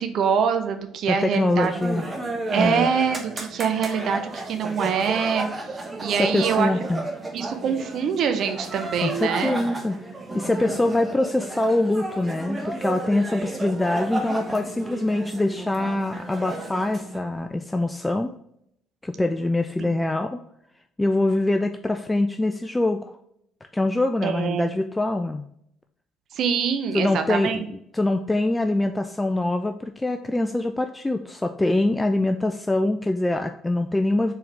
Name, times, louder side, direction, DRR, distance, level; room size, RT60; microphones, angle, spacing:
voice 1, 0.0-1.7 2.5-5.5 6.0-6.7 7.3-9.6 19.8-20.1 24.2-24.7 26.3-27.7, right 7 dB, 55° right, 7 dB, 0.6 m, -24 dB
voice 2, 1.1-2.1 2.6-2.9 6.2-7.1 9.0-10.0 10.3-18.3 19.0-20.4 21.0-23.1 23.7-25.5 26.9-27.6 27.9-34.3, left 2 dB, 15° left, 6 dB, 0.3 m, -24 dB
sound 1, 1.5-17.2, right 2 dB, 20° right, 1.0 m, -33 dB
4.5 x 3.7 x 3.2 m, 0.72 s
figure-of-eight pair, 50°, 0 cm